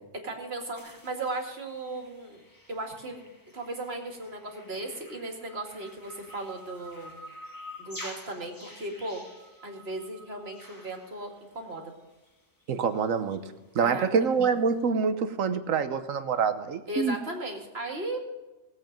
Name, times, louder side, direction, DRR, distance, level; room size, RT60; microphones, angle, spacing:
voice 1, 0.2-2.4 2.7-3.2 3.5-7.2 7.8-9.2 9.6-11.9 13.8-14.1 16.9-18.2, right 2 dB, 45° right, 2 dB, 2.4 m, -36 dB
sound 1, 0.7-12.0 12.2-12.4 12.7-12.8 13.0-13.1 13.4-13.5, left 1 dB, 15° left, 1.6 m, -49 dB
voice 2, 12.7-13.4 13.7-17.2, right 5 dB, 70° right, 10 dB, 1.3 m, -26 dB
19.0 x 8.1 x 5.2 m, 1.1 s
omnidirectional pair, 1.4 m